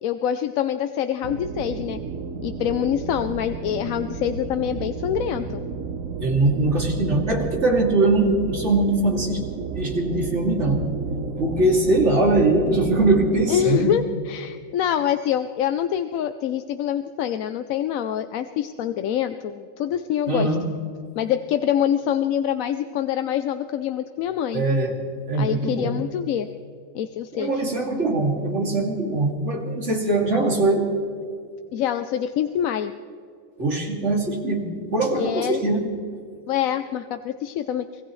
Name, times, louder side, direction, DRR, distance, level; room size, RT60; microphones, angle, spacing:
voice 1, 0.0-2.0 2.4-5.6 13.5-20.5 21.2-24.6 25.4-26.5 26.9-27.6 31.7-32.9 35.2-35.6 36.5-37.8, left 10 dB, 85° left, 9 dB, 1.0 m, -25 dB
sound 1, 1.2-13.7, right 5 dB, 75° right, 1.3 m, -32 dB
voice 2, 6.2-9.4 9.7-10.9 11.4-13.9 20.3-20.7 24.5-24.9 25.3-25.9 27.3-30.9 33.6-35.9, right 2 dB, 60° right, 0 dB, 2.9 m, -21 dB
25.0 x 18.0 x 3.2 m, 2.3 s
omnidirectional pair, 1.4 m